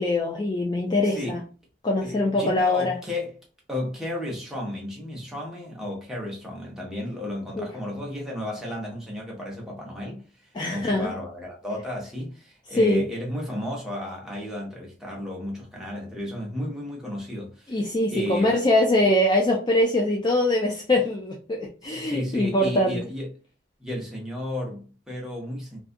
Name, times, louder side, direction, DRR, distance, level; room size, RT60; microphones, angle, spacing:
voice 1, 0.0-1.4 1.8-2.9 7.6-7.7 10.5-11.1 12.8-13.1 17.7-23.0, left 1 dB, 25° left, 0.3 m, -23 dB
voice 2, 1.0-1.4 2.0-3.4 3.7-17.9 18.1-18.6 21.8-23.3 23.8-25.8, left 1 dB, 5° right, 0.8 m, -33 dB
2.4 x 2.3 x 2.5 m
head